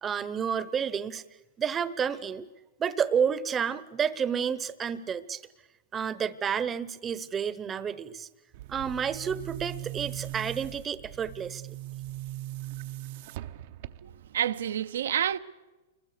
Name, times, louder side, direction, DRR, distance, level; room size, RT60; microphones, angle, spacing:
voice 1, 0.0-1.2 1.6-2.5 2.8-5.4 5.9-8.3 8.7-11.8, right 7 dB, 15° right, 0.9 m, -30 dB
Boom, 8.5-14.3, right 15 dB, 50° right, 0.8 m, -40 dB
voice 2, 14.0-15.4, right 10 dB, 80° right, 1.0 m, -29 dB
28.5 x 22.0 x 6.7 m
hypercardioid pair, 155°, 0 cm